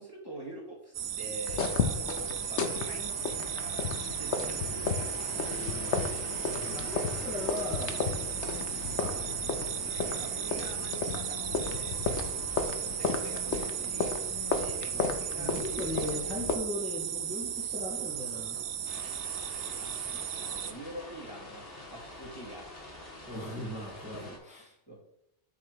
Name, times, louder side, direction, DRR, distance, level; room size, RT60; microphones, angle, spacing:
voice 1, 0.0-3.8 4.2-5.9 10.1-12.0 12.8-14.2 14.6-16.3 19.8-22.7 24.0-24.3 24.9-25.0, right 1 dB, 20° left, -4 dB, 1.9 m, -46 dB
sound 1, 0.9-20.7, right 9 dB, 70° right, 0.9 m, -35 dB
sound 2, 1.5-16.6, left 5 dB, 80° left, 1.1 m, -34 dB
voice 2, 6.5-8.0 8.9-9.2 14.9-18.6 19.7-19.8 23.3-24.7, left 2 dB, 5° right, -5 dB, 1.7 m, -39 dB
sound 3, 18.8-24.4, left 1 dB, 55° left, 2.1 m, -47 dB
7.7 x 3.5 x 6.5 m, 0.79 s
omnidirectional pair, 1.2 m